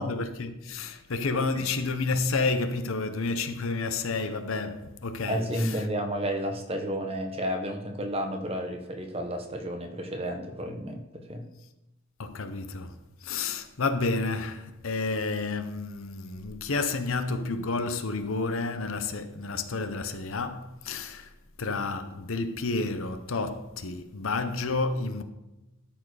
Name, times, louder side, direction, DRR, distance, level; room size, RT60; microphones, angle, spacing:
voice 1, 0.0-5.8 12.2-21.3 21.6-25.2, left 3 dB, 65° left, 0.7 m, -30 dB
voice 2, 1.3-1.6 5.3-11.5, equal, 25° right, 1.0 m, -32 dB
12.5 x 4.6 x 4.8 m
head